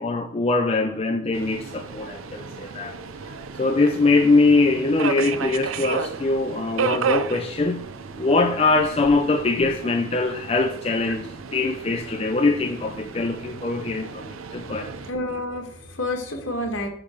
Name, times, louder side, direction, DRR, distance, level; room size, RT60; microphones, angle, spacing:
voice 1, 0.0-2.9 3.6-7.9 8.2-11.3 11.5-14.9, left 3 dB, 30° left, 0.5 m, -22 dB
Subway metro underground, 1.3-15.1, right 5 dB, 80° right, 0.5 m, -33 dB
voice 2, 15.0-16.9, left 1 dB, 65° left, 1.6 m, -29 dB
9.7 x 3.5 x 5.1 m
head